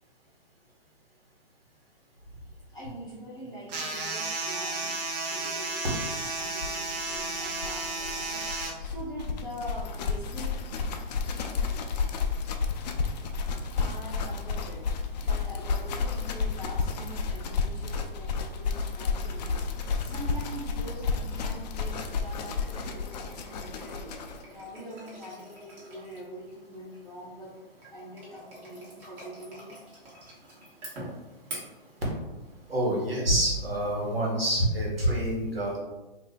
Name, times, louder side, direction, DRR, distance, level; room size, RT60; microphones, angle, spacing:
voice 1, 2.7-5.0 5.2-8.5 8.8-10.6 13.7-14.9 15.2-19.7 20.0-24.1 24.5-27.6 27.9-29.7, equal, 15° left, -7 dB, 0.7 m, -43 dB
sound 1, 3.7-8.7, right 3 dB, 45° right, 0.7 m, -33 dB
sound 2, 6.0-6.1 6.3-6.4 6.6-24.4, left 5 dB, 45° left, 0.4 m, -31 dB
sound 3, 21.5-34.2, right 1 dB, 25° right, 1.2 m, -48 dB
voice 2, 32.7-35.8, right 1 dB, 85° right, -4 dB, 1.5 m, -27 dB
2.7 x 2.5 x 3.8 m, 1.1 s
hypercardioid pair, 125°, 29 cm